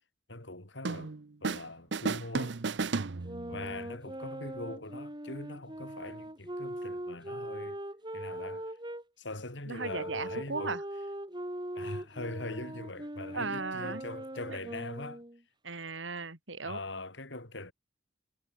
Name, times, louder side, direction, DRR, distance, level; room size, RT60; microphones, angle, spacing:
voice 1, 0.3-1.1 1.4-2.6 3.5-7.8 8.1-8.7 9.2-10.8 11.7-15.2 16.6-17.7, left 2 dB, 70° left, 4.2 m, -42 dB
sound 1, 0.8-1.7 1.9-3.7, right 4 dB, 65° right, 0.7 m, -33 dB
voice 2, 3.0-3.6 9.7-10.8 13.3-14.1 14.5-14.6 15.6-16.8, right 3 dB, 80° right, 3.5 m, -37 dB
sound 2, 3.2-9.0 9.8-15.4, right 1 dB, 25° right, 4.5 m, -41 dB
head